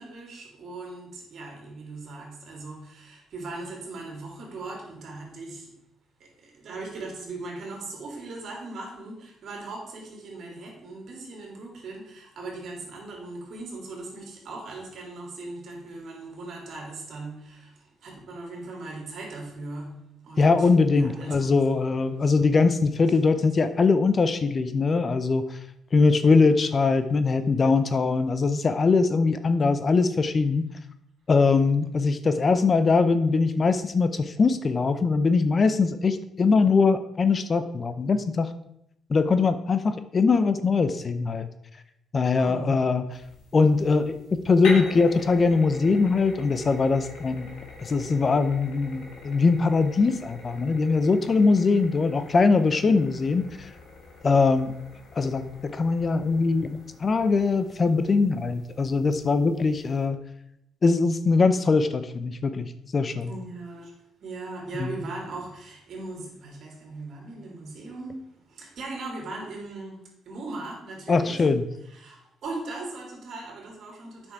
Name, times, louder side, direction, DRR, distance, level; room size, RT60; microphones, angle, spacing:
voice 1, 0.0-5.7 6.2-20.7 20.9-21.8 22.1-22.4 42.4-42.8 63.2-63.9 64.2-71.4 71.8-74.3, right 2 dB, 65° right, 0 dB, 3.1 m, -39 dB
voice 2, 20.4-25.4 25.9-30.7 31.3-38.5 39.1-41.5 42.1-43.0 43.5-44.2 44.4-47.5 47.8-53.7 54.2-54.7 55.1-60.2 60.8-63.3 64.8-65.0 71.1-71.6, left 4 dB, 40° left, 10 dB, 0.7 m, -22 dB
sound 1, 43.1-60.0, left 3 dB, 80° left, 3.6 m, -43 dB
8.0 x 6.3 x 4.7 m, 0.78 s
cardioid pair, 90°, 0 cm